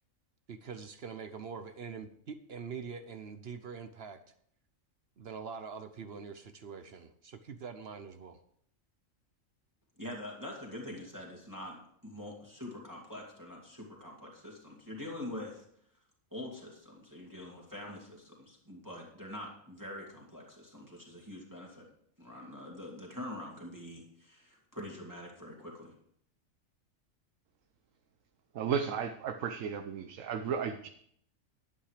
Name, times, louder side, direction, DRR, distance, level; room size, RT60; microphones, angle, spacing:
voice 1, 0.5-4.2 5.2-8.4, right 6 dB, 55° right, 9 dB, 0.9 m, -44 dB
voice 2, 10.0-15.6 16.3-21.8 22.2-25.9, left 1 dB, 15° right, -2 dB, 2.4 m, -45 dB
voice 3, 28.5-30.9, right 7 dB, 75° right, 7 dB, 1.1 m, -34 dB
11.5 x 8.7 x 5.0 m, 0.66 s
omnidirectional pair, 1.4 m